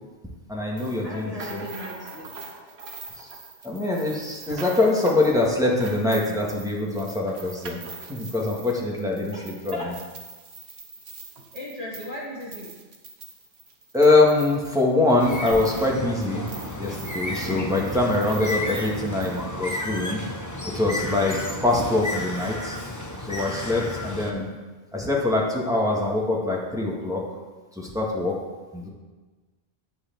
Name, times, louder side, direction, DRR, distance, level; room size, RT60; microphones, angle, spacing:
voice 1, 0.5-1.6 3.2-3.3 3.6-7.8 8.1-9.7 13.9-16.4 16.8-20.2 20.7-21.4 21.6-22.8 23.2-24.5 24.9-27.2 27.8-28.3 28.7-28.9, left 2 dB, 5° right, -3 dB, 1.8 m, -23 dB
sound 1, 0.8-19.4, right 4 dB, 70° right, 1.3 m, -43 dB
voice 2, 1.0-2.4 9.3-10.0 11.5-12.7, left 1 dB, 35° right, -7 dB, 2.1 m, -36 dB
Bird, 15.2-24.3, left 1 dB, 15° left, 1.0 m, -32 dB
11.0 x 4.8 x 7.6 m, 1.3 s
omnidirectional pair, 1.1 m